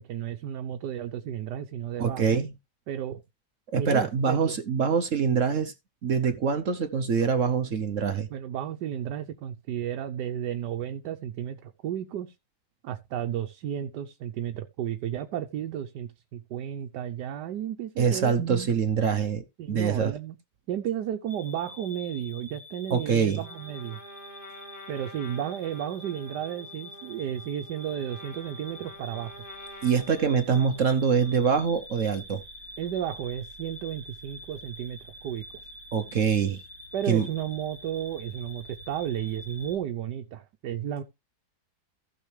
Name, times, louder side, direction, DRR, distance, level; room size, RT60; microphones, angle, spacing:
voice 1, 0.0-2.4 2.9-3.2 3.7-4.4 8.3-12.3 12.8-18.7 19.6-20.4 20.7-24.0 24.9-29.3 32.8-35.0 35.2-35.7 36.9-41.0, right 10 dB, 80° right, 1.4 m, -33 dB
voice 2, 2.0-2.5 3.7-5.7 6.0-8.3 18.0-20.1 22.9-23.4 29.8-32.4 35.9-36.6 37.1-37.3, right 6 dB, 55° right, 1.1 m, -24 dB
sound 1, 21.3-39.8, left 1 dB, 15° left, 2.4 m, -46 dB
Trumpet, 23.3-31.5, equal, 30° left, 1.8 m, -48 dB
15.5 x 6.4 x 3.2 m
omnidirectional pair, 1.8 m